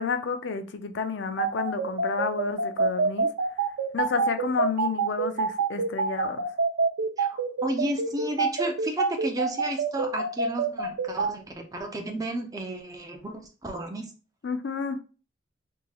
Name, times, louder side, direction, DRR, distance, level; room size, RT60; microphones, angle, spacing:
voice 1, 0.0-3.3 3.9-6.4 14.4-15.0, left 5 dB, 65° left, 0.4 m, -30 dB
sound 1, 1.4-11.3, right 4 dB, 85° right, 0.5 m, -26 dB
voice 2, 7.2-14.0, right 1 dB, 20° right, 0.5 m, -33 dB
3.6 x 3.1 x 2.3 m
head